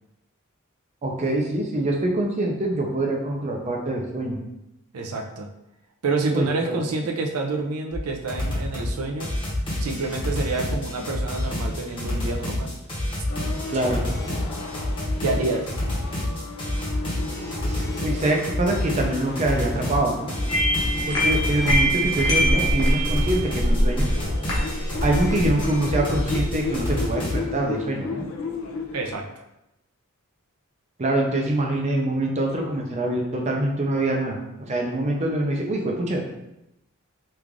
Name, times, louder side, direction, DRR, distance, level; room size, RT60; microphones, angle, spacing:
voice 1, 1.0-4.4 6.3-6.8 13.7-14.0 17.6-20.3 21.1-24.1 25.0-28.3 31.0-36.2, right 1 dB, 30° right, 0 dB, 0.5 m, -25 dB
voice 2, 4.9-5.5 6.0-9.3 9.8-12.7 15.2-15.7 28.9-29.2, right 3 dB, 80° right, 2 dB, 0.5 m, -28 dB
sound 1, 7.9-8.0 8.3-8.9 9.2-27.4, left 1 dB, 25° left, 0.9 m, -28 dB
sound 2, 13.3-29.2, left 3 dB, 65° left, 0.4 m, -35 dB
sound 3, 20.5-27.1, equal, 80° left, 1.1 m, -24 dB
3.2 x 2.5 x 3.5 m, 0.88 s
head